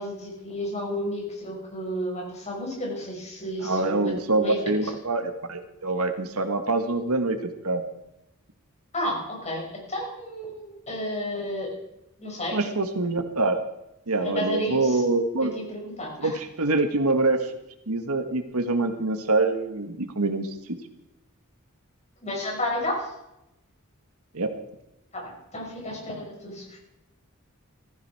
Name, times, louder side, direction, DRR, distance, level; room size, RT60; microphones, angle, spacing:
voice 1, 0.0-4.1 4.4-4.9 8.9-11.7 12.2-12.6 14.2-15.0 15.4-16.4 22.2-23.1 25.1-26.8, equal, 30° left, -1 dB, 5.9 m, -32 dB
voice 2, 3.6-7.4 7.6-7.8 12.5-13.6 14.1-15.5 16.2-17.5 17.9-20.5 24.3-24.5, right 2 dB, 75° right, 7 dB, 1.6 m, -25 dB
15.0 x 15.0 x 4.8 m, 0.88 s
head